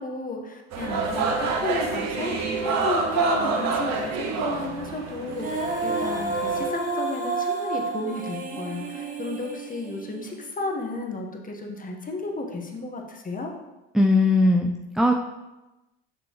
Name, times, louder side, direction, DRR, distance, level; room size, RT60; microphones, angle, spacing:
voice 1, 0.0-2.3 2.6-13.5, left 3 dB, 25° left, 2 dB, 1.4 m, -33 dB
sound 1, 0.7-6.7, right 4 dB, 55° right, 1.2 m, -27 dB
Female singing, 5.3-10.5, right 3 dB, 25° right, 1.4 m, -30 dB
voice 2, 13.9-15.1, left 2 dB, ahead, 3 dB, 0.4 m, -19 dB
7.0 x 6.1 x 3.1 m, 1.0 s
hypercardioid pair, 75°, 33 cm